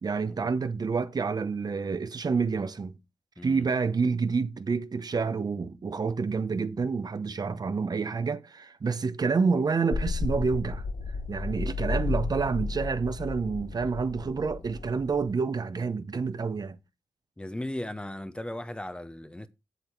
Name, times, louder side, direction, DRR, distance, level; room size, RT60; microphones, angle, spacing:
voice 1, 0.0-3.0 3.4-10.8 11.3-16.8, right 5 dB, 45° right, 0.9 m, -28 dB
voice 2, 3.4-3.7 17.4-19.5, left 1 dB, 10° left, 0.8 m, -37 dB
sound 1, 9.9-15.3, left 4 dB, 50° left, 1.0 m, -33 dB
8.1 x 7.9 x 4.5 m
cardioid pair, 90°, 10 cm